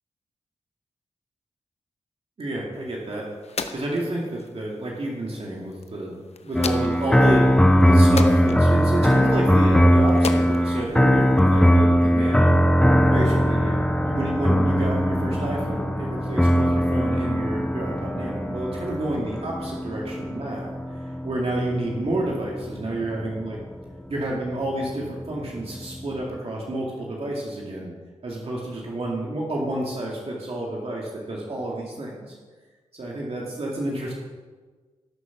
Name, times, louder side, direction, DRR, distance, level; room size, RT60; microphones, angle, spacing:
voice 1, 2.4-3.2 3.7-7.5 7.9-12.7 13.1-20.8 21.2-23.6 24.1-27.9 28.2-32.4 32.9-34.1, right 1 dB, 55° right, -3 dB, 2.3 m, -30 dB
sound 1, 2.7-11.7, left 5 dB, 60° left, 0.9 m, -38 dB
sound 2, 6.5-23.7 24.5-26.4, equal, 5° left, 0.9 m, -20 dB
13.0 x 6.7 x 5.9 m, 1.4 s
cardioid pair, 60°, 12 cm